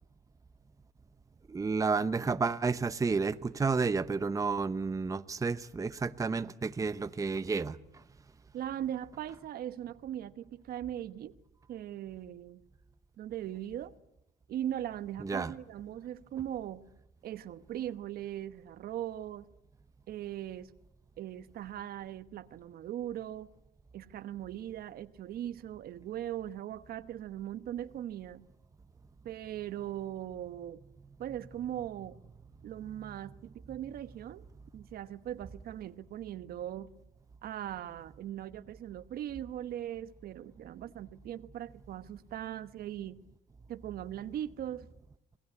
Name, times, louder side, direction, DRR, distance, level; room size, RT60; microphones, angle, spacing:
voice 1, 1.5-7.8 15.2-15.5, right 4 dB, 20° right, 0.9 m, -31 dB
voice 2, 8.5-11.4 11.7-12.6 13.2-13.9 14.5-16.9 17.2-19.5 20.1-20.7 21.2-23.5 23.9-28.4 29.2-30.8 31.2-32.2 32.6-34.4 34.7-36.9 37.4-43.2 43.7-44.9, right 11 dB, 65° right, 1.1 m, -39 dB
27.5 x 19.0 x 9.7 m
cardioid pair, 110°, 17 cm